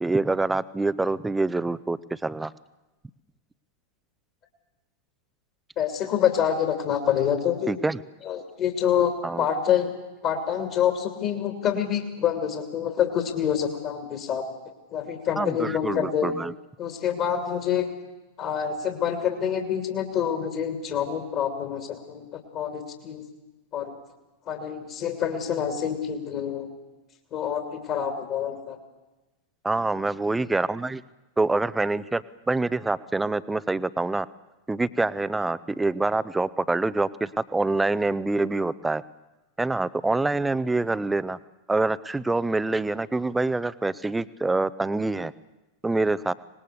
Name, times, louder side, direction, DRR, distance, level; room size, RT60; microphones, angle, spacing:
voice 1, 0.0-2.5 7.7-8.0 9.2-9.5 15.4-16.5 29.6-31.0 31.4-34.3 34.7-39.0 39.6-41.4 41.7-45.3 45.8-46.3, right 2 dB, 10° right, 17 dB, 0.7 m, -26 dB
voice 2, 5.8-7.7 8.2-9.9 10.2-14.4 14.9-16.3 16.8-17.9 18.4-23.2 23.7-23.9 24.5-26.7 27.3-28.8 29.9-30.0, left 9 dB, 40° left, 5 dB, 2.7 m, -27 dB
25.5 x 20.0 x 6.7 m, 1.1 s
figure-of-eight pair, 90°, 0 cm